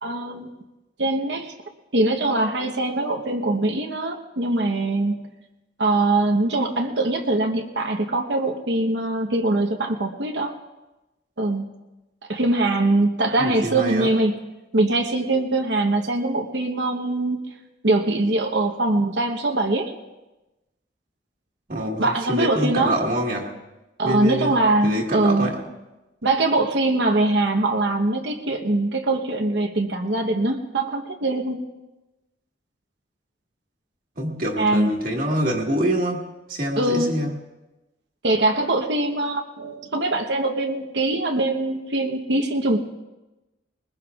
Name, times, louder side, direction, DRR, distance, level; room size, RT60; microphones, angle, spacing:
voice 1, 0.0-0.5 1.0-1.5 1.9-5.2 5.8-10.5 11.4-11.7 12.3-14.3 14.7-17.4 17.8-19.9 22.0-23.0 24.0-25.5 26.2-31.6 34.6-34.9 36.8-37.1 38.2-42.8, right 2 dB, 75° right, 3 dB, 1.0 m, -22 dB
voice 2, 13.4-14.1 21.7-23.5 24.0-24.6 24.8-25.7 34.2-37.3, equal, 50° right, -1 dB, 1.7 m, -25 dB
21.5 x 20.0 x 2.4 m, 1.0 s
head